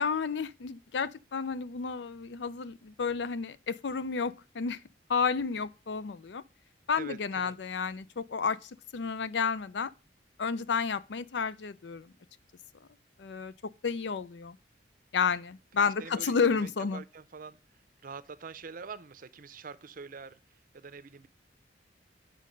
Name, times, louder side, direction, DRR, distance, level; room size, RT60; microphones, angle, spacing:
voice 1, 0.0-4.8 5.1-6.4 6.9-9.9 10.4-12.1 13.2-13.5 13.8-14.6 15.1-17.0, left 5 dB, 65° left, 0.5 m, -31 dB
voice 2, 7.0-7.6 15.9-17.6 18.0-21.3, right 5 dB, 50° right, 0.6 m, -45 dB
8.5 x 6.5 x 5.2 m
head